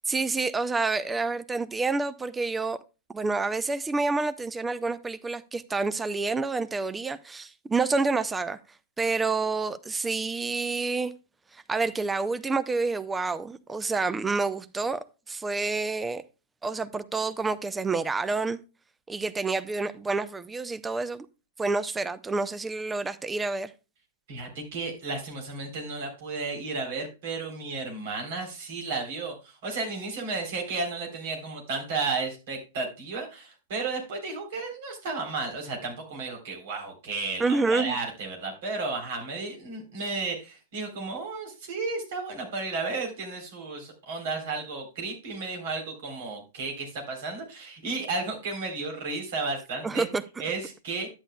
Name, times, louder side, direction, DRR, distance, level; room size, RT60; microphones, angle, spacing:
voice 1, 0.0-2.8 3.1-8.6 9.0-11.1 11.5-15.0 15.3-16.2 16.6-18.6 19.1-21.3 21.6-23.7 37.4-38.0 49.8-50.2, right 3 dB, 10° right, 0.6 m, -28 dB
voice 2, 24.3-50.1 50.4-51.1, right 3 dB, 50° right, 3.7 m, -33 dB
11.0 x 9.7 x 2.3 m
figure-of-eight pair, 100°, 0 cm